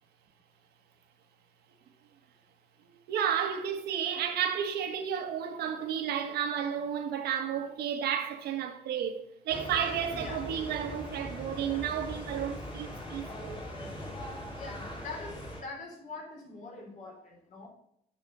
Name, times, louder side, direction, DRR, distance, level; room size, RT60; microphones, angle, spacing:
voice 1, 3.1-13.6, right 8 dB, 75° right, 1.5 m, -32 dB
sound 1, 9.5-15.6, equal, 30° left, 2.5 m, -41 dB
voice 2, 14.5-17.7, left 3 dB, 50° left, 3.8 m, -43 dB
9.0 x 6.4 x 5.4 m
cardioid pair, 110°, 17 cm